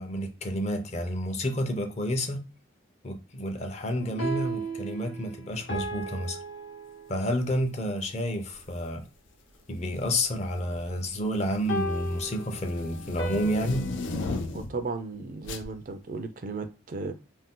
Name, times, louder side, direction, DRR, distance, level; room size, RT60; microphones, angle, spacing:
voice 1, 0.0-2.4 3.0-6.4 7.1-9.0 9.7-13.9, equal, 35° left, 0.5 m, -30 dB
sound 1, 4.0-7.4 11.7-14.2, right 2 dB, 65° left, 0.9 m, -36 dB
sound 2, 8.5-8.8 9.8-10.2 10.6-14.8 15.4-15.7, left 2 dB, 90° left, 0.5 m, -35 dB
voice 2, 14.5-17.1, right 3 dB, 45° right, 0.3 m, -35 dB
2.6 x 2.2 x 3.6 m
head